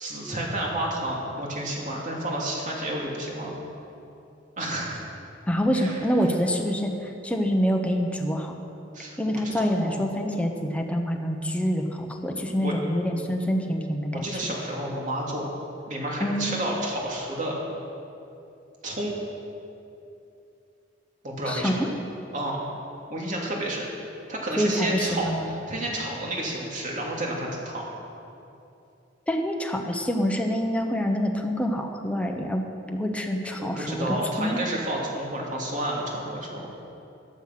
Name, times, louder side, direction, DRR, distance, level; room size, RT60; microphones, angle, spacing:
voice 1, 0.0-3.6 4.6-5.1 5.7-6.0 8.9-9.2 9.4-10.1 12.6-12.7 14.1-15.5 15.9-17.6 18.8-19.1 21.2-21.8 22.3-22.6 23.1-23.9 24.3-27.9 33.5-36.7, right 1 dB, 45° right, -2 dB, 2.7 m, -30 dB
voice 2, 5.5-8.5 9.2-14.2 16.2-16.5 21.5-21.9 24.6-25.5 29.3-32.6 32.9-34.1 34.4-34.6, equal, 5° left, 2 dB, 1.1 m, -26 dB
14.0 x 11.5 x 6.0 m, 2.7 s
head